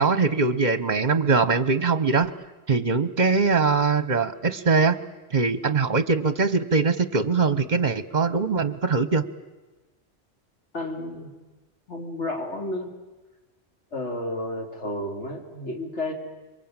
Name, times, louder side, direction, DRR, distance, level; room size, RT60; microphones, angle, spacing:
voice 1, 0.0-2.3 2.7-5.0 5.3-9.2, right 4 dB, 40° right, 13 dB, 1.3 m, -22 dB
voice 2, 10.7-11.3 11.9-12.9 13.9-16.1, left 1 dB, 85° left, 1 dB, 3.3 m, -31 dB
26.0 x 23.5 x 9.0 m, 1.2 s
omnidirectional pair, 1.1 m